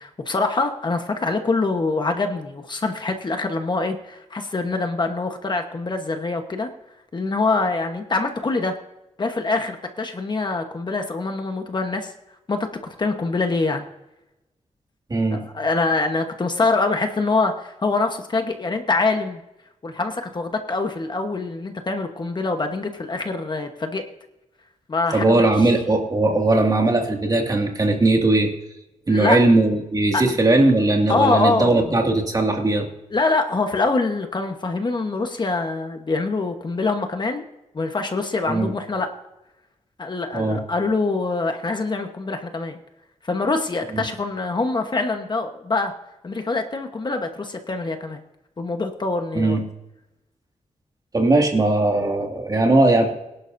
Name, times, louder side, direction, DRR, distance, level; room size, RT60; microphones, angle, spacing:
voice 1, 0.0-6.7 7.1-8.7 9.2-12.1 12.5-12.7 13.0-13.9 15.3-19.4 19.8-24.0 24.9-25.7 29.1-29.4 30.1-30.2 31.1-32.0 33.1-37.5 37.7-39.1 40.0-42.8 43.2-45.9 46.2-48.2 48.6-49.6, left 3 dB, 35° left, 5 dB, 1.2 m, -24 dB
voice 2, 15.1-15.4 25.1-28.5 29.1-32.9 38.5-38.7 40.3-40.6 43.9-44.0 49.3-49.6 51.1-53.1, right 2 dB, 30° right, 1 dB, 2.2 m, -19 dB
23.5 x 11.0 x 2.7 m, 0.95 s
wide cardioid pair, 145°, 13 cm